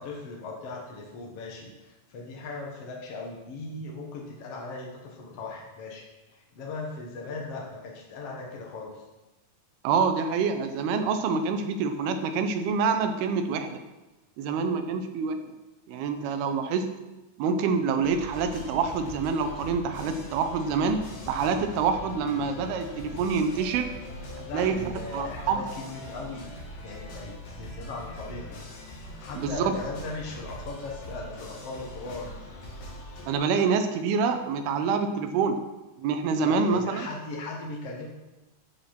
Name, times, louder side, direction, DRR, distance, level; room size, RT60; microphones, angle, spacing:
voice 1, 0.0-9.0 24.4-26.5 26.8-28.5 29.2-32.3 36.4-38.1, left 3 dB, 65° left, -1 dB, 1.5 m, -38 dB
voice 2, 9.8-13.8 14.4-15.5 15.9-16.9 17.4-23.9 24.5-24.8 25.1-25.7 29.3-29.8 33.3-35.6 36.0-37.1, right 5 dB, 75° right, 7 dB, 2.8 m, -26 dB
sound 1, 18.0-33.3, equal, 85° left, 4.5 m, -42 dB
13.5 x 5.6 x 5.9 m, 1.1 s
omnidirectional pair, 4.8 m